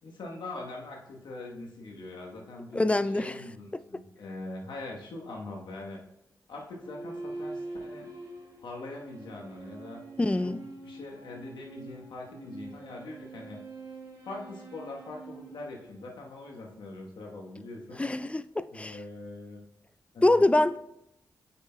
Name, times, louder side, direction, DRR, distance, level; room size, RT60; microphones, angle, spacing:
voice 1, 0.0-6.0 6.5-8.1 8.6-10.0 10.4-10.5 10.8-13.6 14.3-18.0 18.7-19.6 20.1-20.5, left 2 dB, 80° left, 1.1 m, -42 dB
voice 2, 2.7-3.4 3.9-4.0 10.2-10.6 18.0-19.0 20.2-20.8, left 2 dB, 15° left, 0.3 m, -25 dB
sound 1, 6.7-16.4, right 2 dB, 65° right, 2.3 m, -44 dB
8.0 x 5.8 x 2.2 m
supercardioid pair, 40°, 8 cm